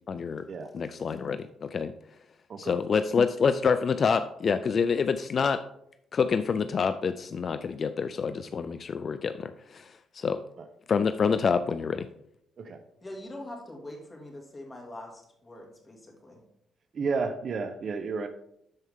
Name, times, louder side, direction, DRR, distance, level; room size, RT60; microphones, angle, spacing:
voice 1, 0.1-0.4 0.7-1.9 2.6-5.6 6.1-10.4 10.9-12.1, left 5 dB, 45° left, 11 dB, 0.4 m, -27 dB
voice 2, 13.0-15.1 15.4-16.0 16.2-16.4, left 1 dB, 25° left, 1 dB, 2.5 m, -42 dB
voice 3, 16.9-18.3, right 4 dB, 50° right, 9 dB, 0.8 m, -31 dB
12.0 x 4.6 x 3.6 m, 0.74 s
cardioid pair, 90°, 0 cm